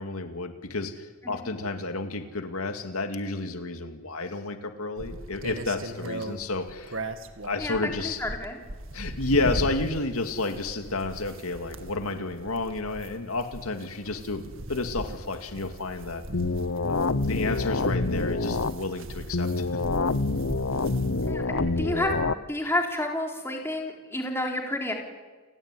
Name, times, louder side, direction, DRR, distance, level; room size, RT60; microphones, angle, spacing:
voice 1, 0.0-7.0 7.4-8.2 8.9-14.4 14.7-16.2 16.9-19.8, left 2 dB, 85° left, 7 dB, 2.2 m, -31 dB
sound 1, 5.0-22.2, right 1 dB, 65° right, 2.1 m, -39 dB
voice 2, 8.0-8.6 21.3-22.1 22.5-24.9, left 1 dB, 10° left, 2 dB, 4.1 m, -30 dB
phasemod wub, 16.3-18.7 19.3-22.3, left 3 dB, 65° left, 0.9 m, -27 dB
29.5 x 17.5 x 9.7 m, 1.4 s
head